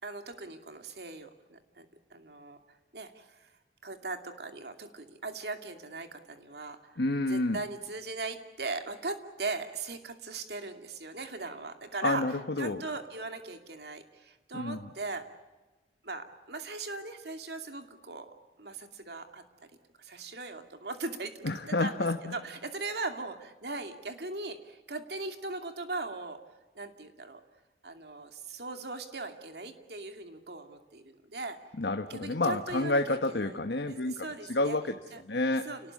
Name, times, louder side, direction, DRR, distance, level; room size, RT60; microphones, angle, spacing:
voice 1, 0.0-1.9 2.1-2.6 2.9-3.5 3.8-7.0 7.3-12.2 12.6-15.3 16.0-18.3 18.6-19.4 20.0-26.4 26.8-27.4 27.8-31.6 32.1-33.6 33.9-34.8 35.1-35.2 35.6-35.9, right 3 dB, 70° right, 6 dB, 2.5 m, -39 dB
voice 2, 7.0-7.6 12.0-12.8 14.5-14.8 21.4-22.4 31.8-34.9 35.2-35.7, left 2 dB, 75° left, 6 dB, 1.2 m, -29 dB
29.0 x 19.0 x 8.5 m, 1.2 s
head